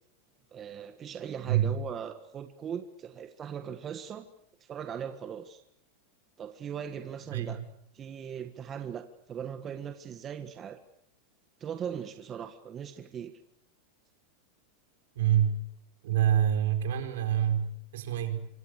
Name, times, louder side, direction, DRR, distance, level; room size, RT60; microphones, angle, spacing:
voice 1, 0.5-4.3 4.6-5.6 6.4-7.6 7.9-10.8 11.6-13.3, right 8 dB, 30° right, 8 dB, 1.6 m, -39 dB
voice 2, 7.3-7.6 15.1-15.6 16.0-18.5, right 10 dB, 80° right, 6 dB, 4.9 m, -27 dB
26.0 x 26.0 x 6.7 m, 0.73 s
supercardioid pair, 130°, 0 cm